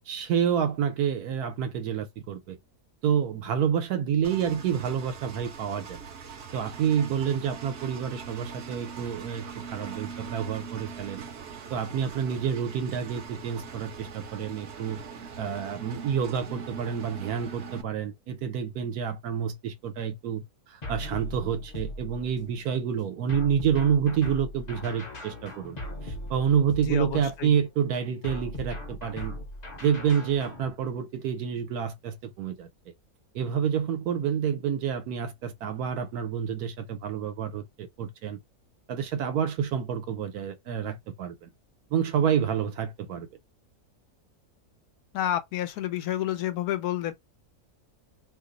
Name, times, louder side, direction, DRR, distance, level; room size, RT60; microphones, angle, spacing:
voice 1, 0.1-2.6 3.0-6.0 6.5-11.2 11.7-15.0 15.4-25.8 26.0-29.4 29.8-32.9 33.3-38.4 38.9-41.5 41.9-43.3, right 8 dB, 80° right, 1.2 m, -28 dB
Engine, 4.2-17.8, right 6 dB, 55° right, 0.8 m, -42 dB
sound 1, 20.8-22.5 23.3-27.5 28.2-30.7, equal, 35° left, 0.7 m, -39 dB
voice 2, 26.9-27.5 45.1-47.1, left 12 dB, 80° left, 1.1 m, -29 dB
3.0 x 2.0 x 3.7 m
omnidirectional pair, 1.6 m